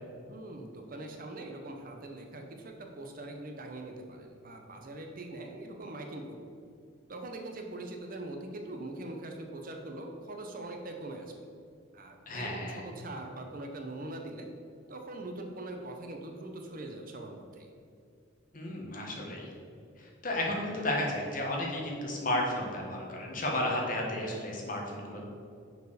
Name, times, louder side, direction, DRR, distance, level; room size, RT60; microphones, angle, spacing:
voice 1, 0.3-6.4 7.1-11.3 11.9-14.5 14.9-17.7, right 2 dB, 45° right, 3 dB, 0.8 m, -42 dB
voice 2, 12.3-12.8 18.5-19.5 20.0-25.2, left 1 dB, 40° left, -1 dB, 1.4 m, -33 dB
6.6 x 4.6 x 6.7 m, 2.5 s
head